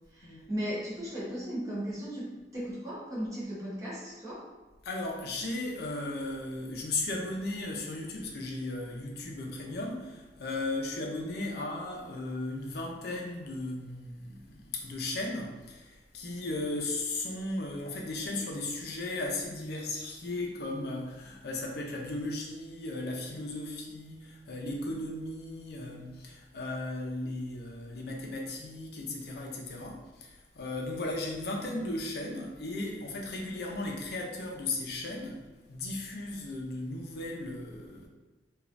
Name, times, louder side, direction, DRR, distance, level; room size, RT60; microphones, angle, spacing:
voice 1, 0.1-4.5, equal, 20° right, -8 dB, 0.9 m, -36 dB
voice 2, 4.8-38.1, left 2 dB, 60° left, 0 dB, 0.5 m, -36 dB
3.1 x 2.4 x 2.5 m, 1.2 s
head